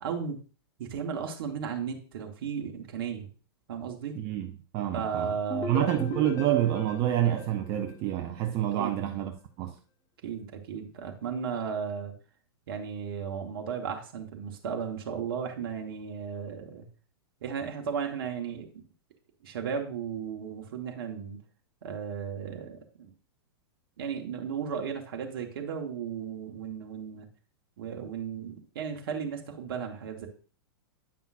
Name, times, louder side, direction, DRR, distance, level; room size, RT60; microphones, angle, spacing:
voice 1, 0.0-0.4 0.8-3.3 3.7-4.2 4.9-5.9 8.8-8.9 10.2-12.1 12.7-16.9 17.4-18.8 19.4-21.4 21.8-23.1 24.0-27.3 27.8-30.3, right 7 dB, 60° right, 1.1 m, -35 dB
voice 2, 4.2-5.3 5.7-9.3 9.6-9.7, right 12 dB, 35° right, 0.6 m, -28 dB
sound 1, 5.5-8.4, left 2 dB, 30° left, 1.2 m, -38 dB
8.4 x 5.5 x 2.4 m
hypercardioid pair, 105°, 13 cm